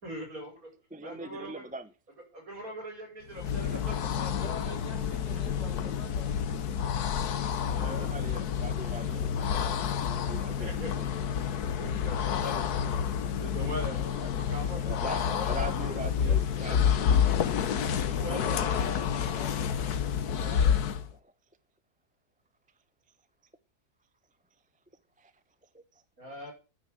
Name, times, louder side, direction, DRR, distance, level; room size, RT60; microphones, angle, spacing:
voice 1, 0.0-0.7 1.0-1.6 2.3-4.7 7.7-8.1 10.6-10.9 11.6-13.0 13.4-14.8 15.3-16.0 16.3-16.4 16.7-19.1 20.4-20.8 26.2-26.5, equal, 65° right, 6.4 m, -42 dB
voice 2, 0.9-1.9 5.8-5.9 7.7-11.1 12.3-12.4 12.9-13.4 13.9-17.0 19.0-19.7 19.9-21.3 25.2-25.3 25.7-26.3, right 1 dB, 10° right, 0.6 m, -43 dB
sound 1, 3.3-21.1, left 8 dB, 85° left, 1.5 m, -29 dB
voice 3, 4.4-6.3 15.8-16.4 19.1-19.5, left 2 dB, 45° left, 2.9 m, -46 dB
9.9 x 9.2 x 7.6 m
omnidirectional pair, 1.6 m